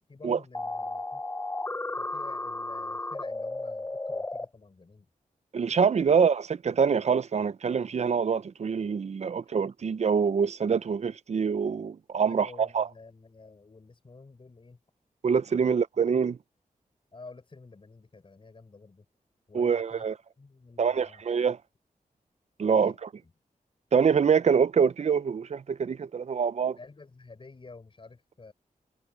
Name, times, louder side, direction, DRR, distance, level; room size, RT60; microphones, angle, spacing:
voice 1, 0.1-1.2 2.0-5.1 6.0-6.2 9.4-9.6 12.3-14.8 15.6-15.7 17.1-19.0 19.5-20.0 20.4-21.2 22.7-23.3 26.6-28.5, left 3 dB, 35° left, 4.8 m, -50 dB
sound 1, 0.5-4.5, left 2 dB, 15° left, 0.3 m, -34 dB
voice 2, 5.5-12.9 15.2-16.4 19.5-20.1 20.8-21.6 22.6-22.9 23.9-26.8, right 6 dB, 50° right, 0.5 m, -25 dB
wide cardioid pair, 160°, 15 cm